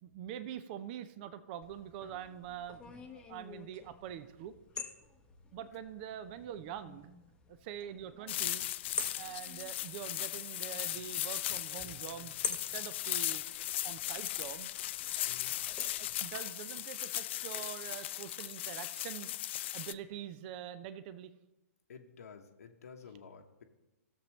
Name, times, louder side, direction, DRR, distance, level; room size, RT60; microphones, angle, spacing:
voice 1, 0.0-4.6 5.5-7.1 7.5-8.7 9.2-13.4 13.8-14.7 15.2-19.3 19.7-21.3, right 10 dB, 40° right, 13 dB, 0.6 m, -45 dB
sound 1, 1.6-16.2, left 5 dB, 10° left, 0.9 m, -47 dB
sound 2, 8.3-19.9, left 14 dB, 45° left, 0.4 m, -37 dB
voice 2, 21.9-23.6, left 6 dB, 70° left, 3 dB, 1.0 m, -52 dB
16.0 x 7.1 x 3.1 m, 1.0 s
hypercardioid pair, 125°, 8 cm